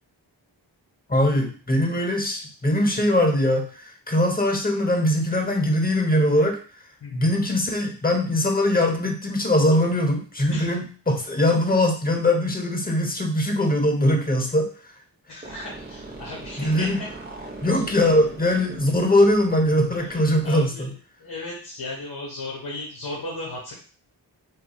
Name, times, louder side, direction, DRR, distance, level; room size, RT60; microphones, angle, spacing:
voice 1, 1.1-6.6 7.1-14.7 16.6-17.0 17.6-20.9, left 1 dB, 20° left, 3 dB, 0.9 m, -21 dB
voice 2, 7.0-7.3 10.5-10.7 15.3-17.1 17.7-17.8 20.0-20.2 20.4-20.9 21.2-23.7, left 2 dB, 65° left, -4 dB, 1.4 m, -35 dB
sound 1, 15.4-20.5, right 2 dB, 20° right, 0.8 m, -40 dB
3.8 x 2.7 x 2.3 m, 0.40 s
cardioid pair, 60°, 43 cm